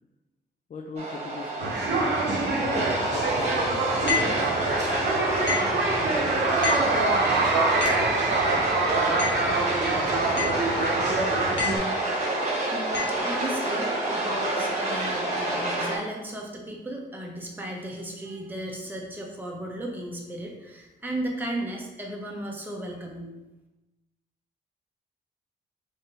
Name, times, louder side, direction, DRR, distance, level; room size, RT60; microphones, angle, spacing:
voice 1, 0.7-3.3 3.6-4.0, left 4 dB, 40° left, 2 dB, 0.4 m, -40 dB
sound 1, 1.0-16.0, right 1 dB, 35° right, 1.2 m, -28 dB
sound 2, 1.6-11.8, right 3 dB, 65° right, 0.8 m, -26 dB
sound 3, 4.1-4.4 5.5-5.8 6.6-7.0 7.8-8.1 9.2-9.5 10.4-10.7 11.6-11.9 12.9-13.2, left 5 dB, 70° left, 1.2 m, -29 dB
voice 2, 12.7-23.3, right 1 dB, 10° right, -1 dB, 0.8 m, -35 dB
3.6 x 2.6 x 4.1 m, 1.0 s
cardioid pair, 65°, 19 cm